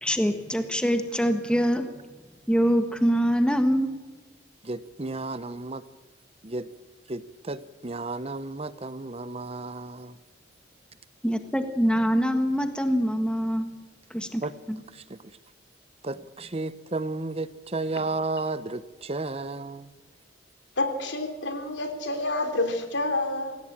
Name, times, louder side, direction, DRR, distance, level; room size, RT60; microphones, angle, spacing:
voice 1, 0.0-1.9 2.5-3.9 11.2-13.7 14.1-14.4 14.7-14.8, equal, 5° left, 7 dB, 1.6 m, -24 dB
voice 2, 4.6-5.8 6.4-6.7 7.1-10.2 14.4-14.5 14.9-15.4 16.0-19.9, right 3 dB, 35° right, 14 dB, 0.9 m, -33 dB
voice 3, 20.8-23.6, left 2 dB, 80° left, 6 dB, 3.4 m, -28 dB
26.5 x 16.5 x 8.9 m, 1.3 s
head